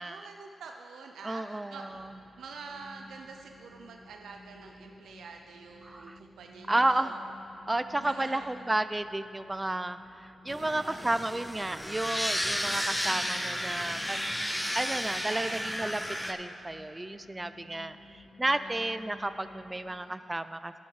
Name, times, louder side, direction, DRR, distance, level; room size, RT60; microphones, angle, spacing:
voice 1, 0.0-2.0 2.4-7.2 7.9-8.5 10.6-11.0 13.0-13.3 15.2-15.7 18.4-18.9 19.9-20.1, right 4 dB, 90° right, 3 dB, 0.5 m, -46 dB
voice 2, 1.2-2.1 5.8-6.2 6.7-7.1 7.7-14.2 14.7-16.0 16.3-20.7, right 2 dB, 20° right, 12 dB, 0.4 m, -32 dB
sound 1, 1.9-20.0, left 2 dB, 40° left, 1.6 m, -54 dB
sound 2, 10.5-16.3, equal, 5° left, 0.8 m, -33 dB
13.0 x 6.1 x 4.9 m, 2.7 s
cardioid pair, 55°, 0 cm